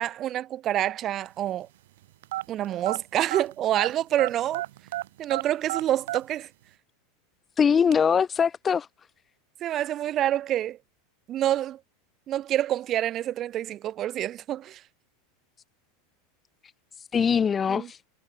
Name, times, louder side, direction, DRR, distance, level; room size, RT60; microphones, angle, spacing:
voice 1, 0.0-1.7 2.5-4.6 5.2-6.5 9.6-10.8 11.3-11.8 12.3-14.8 17.7-17.9, right 12 dB, 40° right, 2.4 m, -27 dB
sound 1, 2.2-3.9 4.2-6.2, right 15 dB, 75° right, 3.2 m, -31 dB
voice 2, 7.6-8.9 17.1-18.0, left 7 dB, 25° left, 1.1 m, -22 dB
hypercardioid pair, 115°, 0 cm